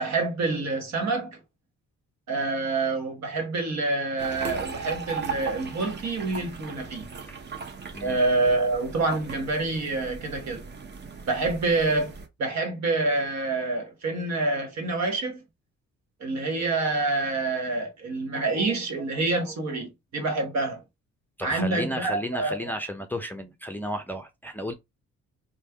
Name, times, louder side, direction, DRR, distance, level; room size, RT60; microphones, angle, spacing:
voice 1, 0.0-1.4 2.3-7.1 8.0-10.6 11.3-12.1 12.4-15.4 16.2-20.8 21.4-22.6, right 3 dB, 65° right, 1.3 m, -27 dB
sound 1, 4.2-12.3, right 5 dB, 35° right, 0.8 m, -38 dB
voice 2, 21.4-24.7, equal, 5° left, 0.5 m, -33 dB
3.3 x 2.2 x 3.4 m
cardioid pair, 90°, 30 cm